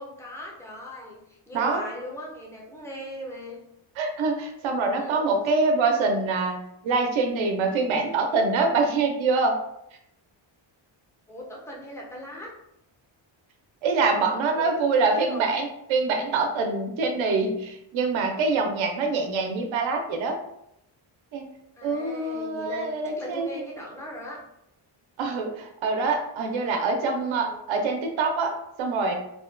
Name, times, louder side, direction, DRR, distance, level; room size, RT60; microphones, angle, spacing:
voice 1, 0.0-3.6 4.9-5.4 11.3-12.5 14.5-15.6 21.8-24.4 27.4-27.7, left 1 dB, 5° left, -3 dB, 0.4 m, -39 dB
voice 2, 4.0-6.6 6.8-9.6 13.8-20.4 21.3-21.5 21.8-23.6 25.2-29.1, right 3 dB, 75° right, 3 dB, 0.5 m, -25 dB
2.4 x 2.1 x 2.4 m, 0.79 s
wide cardioid pair, 150°, 47 cm